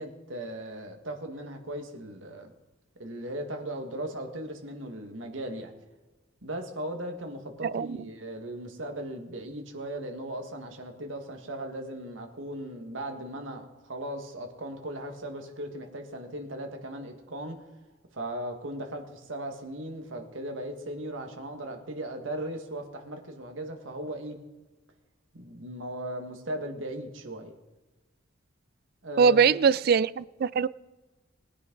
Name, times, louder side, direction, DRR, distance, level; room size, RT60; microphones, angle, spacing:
voice 1, 0.0-2.5 3.0-5.7 6.4-17.7 18.1-24.4 25.3-27.5 29.0-29.6, right 1 dB, 80° right, 1.9 m, -37 dB
voice 2, 7.6-8.0 29.2-30.7, right 6 dB, 50° right, 0.3 m, -22 dB
20.0 x 9.8 x 4.0 m
head